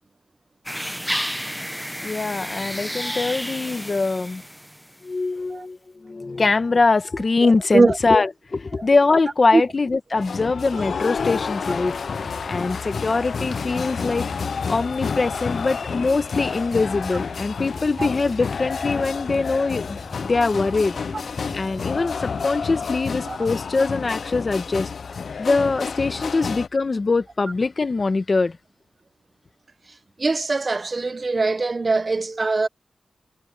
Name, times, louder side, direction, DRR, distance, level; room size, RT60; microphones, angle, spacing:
sound 1, 0.7-5.0, equal, ahead, 0.6 m, -31 dB
voice 1, 2.0-4.4 5.0-12.0 12.5-14.2 14.7-20.0 20.2-21.0 21.5-24.9 25.4-28.6, left 3 dB, 45° left, 1.2 m, -22 dB
voice 2, 7.4-8.0 8.8-8.9 9.5-9.6 18.0-18.1 21.4-21.5 23.2-23.4 30.2-32.7, right 3 dB, 40° right, 0.7 m, -21 dB
sound 2, 10.1-26.7, left 5 dB, 75° left, 0.3 m, -29 dB
sound 3, 12.0-22.7, right 1 dB, 15° right, 2.5 m, -44 dB
wide cardioid pair, 115°, 0 cm